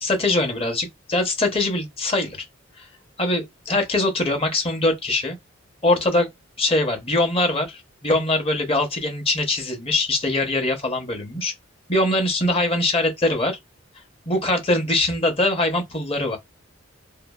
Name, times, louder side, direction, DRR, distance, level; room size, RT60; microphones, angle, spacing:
voice 1, 0.0-2.4 2.8-2.9 3.2-5.4 5.8-6.3 6.6-11.5 11.9-13.6 14.3-16.4, left 2 dB, 30° left, 0.7 m, -22 dB
2.6 x 2.3 x 2.3 m
head